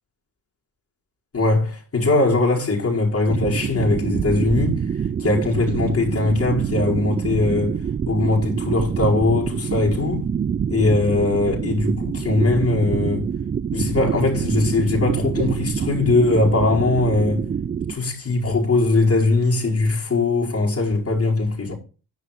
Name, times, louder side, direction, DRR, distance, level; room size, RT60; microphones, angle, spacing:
voice 1, 1.3-4.8 5.2-7.8 8.1-10.2 10.7-13.3 13.7-17.5 17.9-21.7, left 3 dB, 30° left, 4.9 m, -20 dB
sound 1, 3.3-17.9, right 7 dB, 25° right, 0.4 m, -26 dB
10.5 x 5.9 x 5.2 m
supercardioid pair, 70°, 44 cm